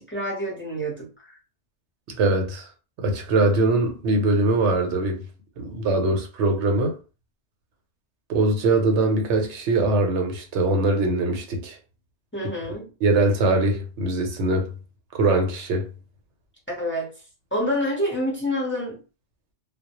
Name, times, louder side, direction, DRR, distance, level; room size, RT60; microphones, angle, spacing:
voice 1, 0.0-1.3 12.3-12.9 16.7-17.1 17.5-19.0, equal, 15° left, 0.6 m, -27 dB
voice 2, 2.2-2.7 3.0-5.2 5.6-7.0 8.3-11.8 13.0-14.7 15.1-15.9, right 2 dB, 80° right, 1.0 m, -22 dB
2.1 x 2.0 x 2.9 m
omnidirectional pair, 1.2 m